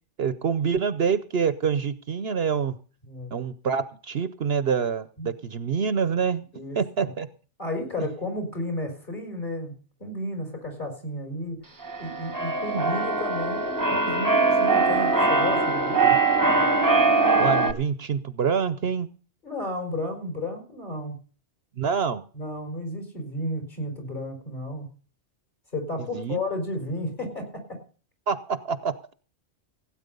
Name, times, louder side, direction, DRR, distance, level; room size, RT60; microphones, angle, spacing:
voice 1, 0.2-2.7 3.3-6.4 6.7-7.3 16.0-16.2 17.4-19.1 21.8-22.2 26.1-26.4 28.3-28.9, right 6 dB, 60° right, 13 dB, 1.0 m, -26 dB
voice 2, 6.5-7.1 7.6-9.7 10.0-16.2 19.4-21.1 22.3-24.9 25.7-27.8, left 1 dB, 40° left, 3 dB, 5.3 m, -33 dB
Keyboard (musical), 11.8-17.7, right 3 dB, 15° right, 1.1 m, -22 dB
16.5 x 9.0 x 5.3 m, 0.39 s
omnidirectional pair, 1.2 m